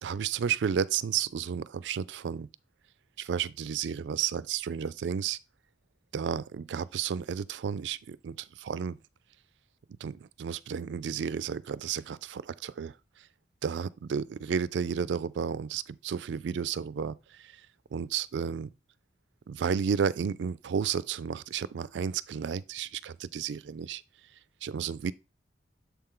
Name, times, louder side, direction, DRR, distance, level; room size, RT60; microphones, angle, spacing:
voice 1, 0.0-2.5 3.2-5.4 6.1-9.0 10.0-12.9 13.6-17.5 17.9-18.7 19.5-24.0 24.6-25.1, right 7 dB, 80° right, 0.4 m, -32 dB
7.0 x 4.4 x 3.7 m
head